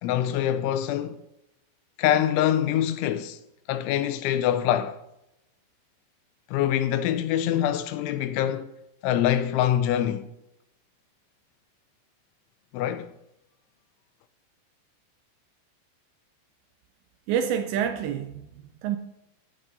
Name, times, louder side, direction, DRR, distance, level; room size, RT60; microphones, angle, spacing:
voice 1, 0.0-1.2 2.0-3.4 3.7-5.0 6.5-8.7 9.0-10.3 12.7-13.1, left 11 dB, 85° left, 3.0 m, -24 dB
voice 2, 17.3-19.0, right 8 dB, 80° right, 2.6 m, -28 dB
15.0 x 10.0 x 2.6 m
omnidirectional pair, 5.5 m